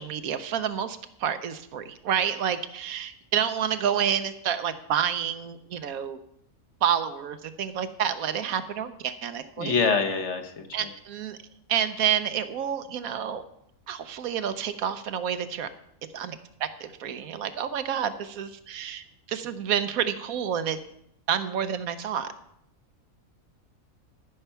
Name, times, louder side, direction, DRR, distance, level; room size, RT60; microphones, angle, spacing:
voice 1, 0.0-6.2 6.8-9.8 10.7-11.4 11.7-13.4 13.9-15.7 16.1-20.8 21.3-22.3, right 8 dB, 75° right, 11 dB, 1.1 m, -29 dB
voice 2, 9.6-10.9, left 5 dB, 55° left, 7 dB, 1.3 m, -26 dB
13.0 x 5.8 x 5.6 m, 0.74 s
omnidirectional pair, 1.5 m